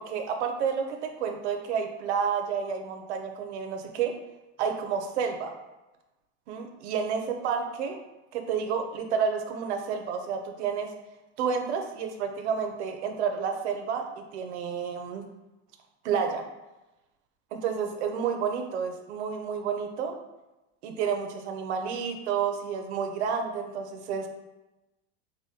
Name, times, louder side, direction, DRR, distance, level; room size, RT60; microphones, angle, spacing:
voice 1, 0.0-4.1 4.6-5.5 6.5-8.0 8.3-10.9 11.4-14.0 14.3-15.2 16.0-16.4 17.5-20.2 20.8-24.3, right 6 dB, 90° right, 5 dB, 0.6 m, -30 dB
4.9 x 2.2 x 2.7 m, 1.0 s
supercardioid pair, 170°, 33 cm